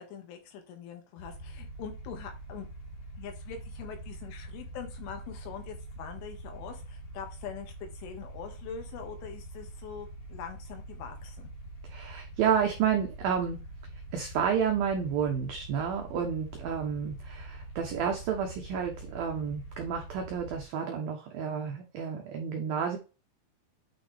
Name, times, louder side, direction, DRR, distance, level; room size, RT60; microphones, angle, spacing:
voice 1, 0.0-2.7 3.2-11.5, left 7 dB, 75° left, 4 dB, 4.1 m, -43 dB
sound 1, 1.2-20.6, right 2 dB, 50° left, 3.0 m, -45 dB
voice 2, 11.9-13.6 14.1-23.0, right 7 dB, 85° right, 3 dB, 2.0 m, -30 dB
9.3 x 5.8 x 3.5 m, 0.32 s
omnidirectional pair, 5.8 m